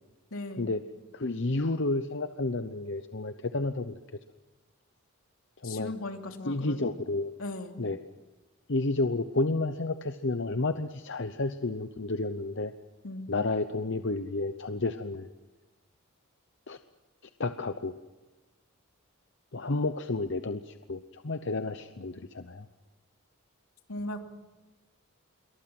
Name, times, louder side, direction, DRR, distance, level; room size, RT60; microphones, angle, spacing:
voice 1, 0.3-0.7 5.6-6.8 7.4-7.8 13.0-13.3 23.9-24.2, left 2 dB, 80° left, 4 dB, 2.8 m, -38 dB
voice 2, 1.1-3.9 5.6-5.9 6.4-7.3 7.8-8.0 8.7-12.7 13.3-15.3 16.7-16.8 17.4-17.9 19.5-22.7, left 2 dB, 55° left, 9 dB, 0.9 m, -31 dB
27.5 x 23.5 x 6.0 m, 1.2 s
head